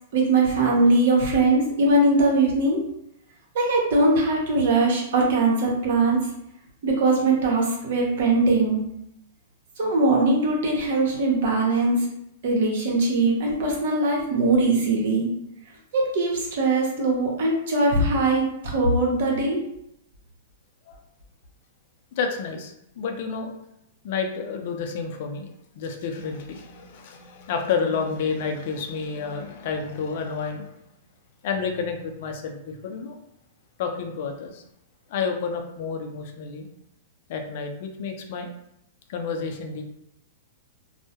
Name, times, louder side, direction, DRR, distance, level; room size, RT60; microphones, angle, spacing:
voice 1, 0.1-2.8 3.5-6.2 6.8-8.8 9.8-12.1 12.4-15.3 15.9-19.6, right 2 dB, 65° right, -1 dB, 0.8 m, -21 dB
voice 2, 22.2-23.5 24.0-25.5 25.7-30.7 31.4-33.2 33.8-34.6 35.1-36.7 37.3-38.5 39.1-39.8, left 5 dB, 55° left, 4 dB, 0.4 m, -30 dB
2.2 x 2.1 x 2.7 m, 0.78 s
hypercardioid pair, 130°, 0 cm